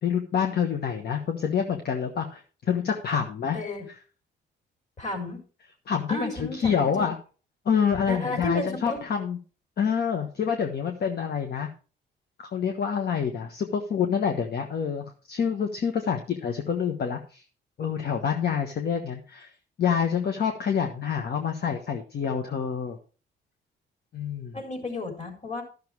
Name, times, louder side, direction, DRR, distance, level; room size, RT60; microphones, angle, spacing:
voice 1, 0.0-3.6 5.9-7.1 7.6-9.4 9.8-11.7 12.4-17.4 17.8-19.5 19.8-23.0 24.1-24.6, left 7 dB, 55° left, 5 dB, 1.3 m, -27 dB
voice 2, 3.5-3.9 5.0-5.4 6.1-7.1 8.1-9.0 24.5-25.6, left 2 dB, 35° left, 4 dB, 4.2 m, -33 dB
12.0 x 6.7 x 4.7 m, 0.37 s
cardioid pair, 90°, 20 cm